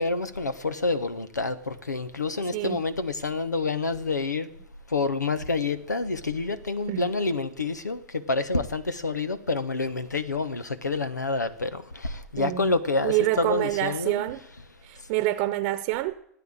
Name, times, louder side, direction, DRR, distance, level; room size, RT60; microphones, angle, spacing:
voice 1, 0.0-4.5 4.9-14.2 15.0-15.1, left 3 dB, 90° left, 1.1 m, -28 dB
voice 2, 12.4-12.7 13.0-14.4 14.8-16.1, right 16 dB, 50° right, 0.9 m, -27 dB
16.5 x 9.2 x 8.8 m
figure-of-eight pair, 95°, 9 cm